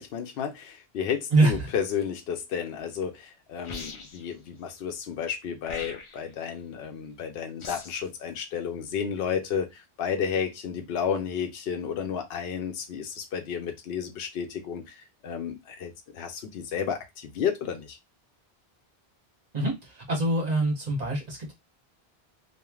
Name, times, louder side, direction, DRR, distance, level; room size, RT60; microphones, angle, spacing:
voice 1, 0.0-18.0, left 7 dB, 75° left, 0.8 m, -32 dB
voice 2, 1.3-1.7 19.5-21.5, right 2 dB, 40° right, 1.1 m, -24 dB
sound 1, 3.6-4.3 5.6-6.3 7.6-8.1, left 3 dB, 50° left, 0.4 m, -41 dB
3.1 x 2.4 x 2.3 m
omnidirectional pair, 1.0 m